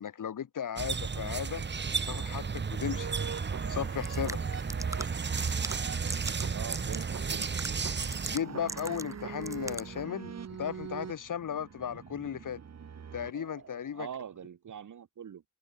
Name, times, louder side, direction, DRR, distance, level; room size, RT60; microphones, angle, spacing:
voice 1, 0.0-1.6 2.1-3.1 3.7-4.4 8.3-12.6 13.1-14.1, left 8 dB, 90° left, 3.5 m, -36 dB
sound 1, 0.8-8.4, right 5 dB, 35° right, 1.2 m, -33 dB
sound 2, 3.0-13.9, right 7 dB, 55° right, 1.9 m, -44 dB
sound 3, 3.9-10.0, right 2 dB, 10° right, 0.8 m, -43 dB
voice 2, 6.5-7.6 13.9-15.4, right 8 dB, 75° right, 2.5 m, -43 dB
wide cardioid pair, 130°, 31 cm